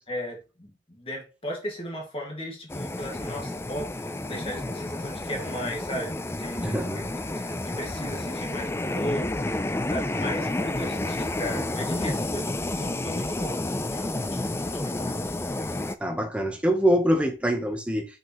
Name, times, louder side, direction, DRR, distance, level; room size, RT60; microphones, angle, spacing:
voice 1, 0.1-7.0 7.4-9.6 9.9-13.6 13.9-15.2, equal, 30° left, 2.0 m, -36 dB
sound 1, 2.7-16.0, left 2 dB, 15° left, 0.4 m, -30 dB
voice 2, 6.6-7.0 16.0-18.0, equal, 5° right, 1.0 m, -24 dB
6.1 x 5.3 x 3.1 m
head